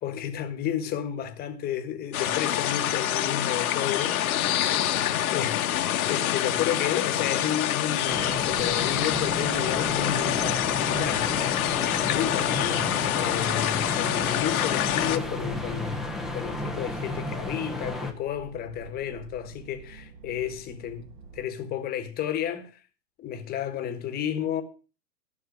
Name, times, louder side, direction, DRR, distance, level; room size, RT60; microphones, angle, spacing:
voice 1, 0.0-11.3 12.1-16.0 16.3-21.1 21.3-22.7 23.2-24.6, left 10 dB, 20° left, 1.5 m, -32 dB
sound 1, 2.1-15.2, left 12 dB, 55° left, 1.3 m, -26 dB
sound 2, 8.1-18.1, left 2 dB, ahead, 0.9 m, -33 dB
sound 3, 14.9-21.4, right 6 dB, 65° right, 4.9 m, -47 dB
13.5 x 6.4 x 7.3 m
hypercardioid pair, 140°, 50 cm